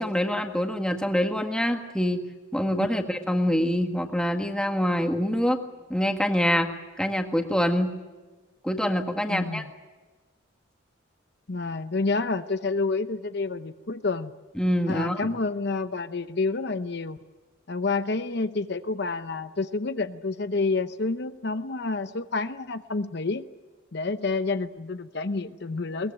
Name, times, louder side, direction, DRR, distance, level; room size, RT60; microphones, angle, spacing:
voice 1, 0.0-2.2 2.5-5.6 5.9-6.7 7.0-7.9 8.6-9.6 14.6-15.2, equal, 5° left, 4 dB, 1.7 m, -25 dB
voice 2, 9.3-9.7 11.5-14.3 14.9-17.2 17.7-23.4 23.9-26.1, left 3 dB, 55° left, 10 dB, 0.8 m, -29 dB
22.0 x 20.5 x 8.9 m, 1.2 s
head